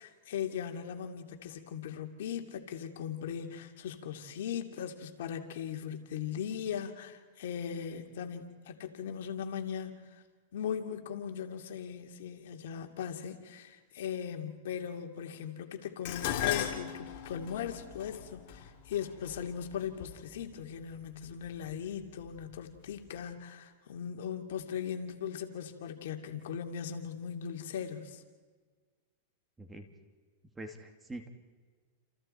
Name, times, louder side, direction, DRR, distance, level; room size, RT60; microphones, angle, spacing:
voice 1, 0.0-10.2 10.5-28.2, left 8 dB, 70° left, 4 dB, 2.6 m, -39 dB
Dishes pots and pans, 16.1-20.4 21.3-21.7 22.1-22.9 23.2-23.3, left 11 dB, 50° left, 3.2 m, -37 dB
voice 2, 29.6-29.9 30.6-31.3, right 1 dB, 10° right, 5 dB, 2.4 m, -44 dB
30.0 x 28.5 x 4.5 m, 1.4 s
hypercardioid pair, 135°, 0 cm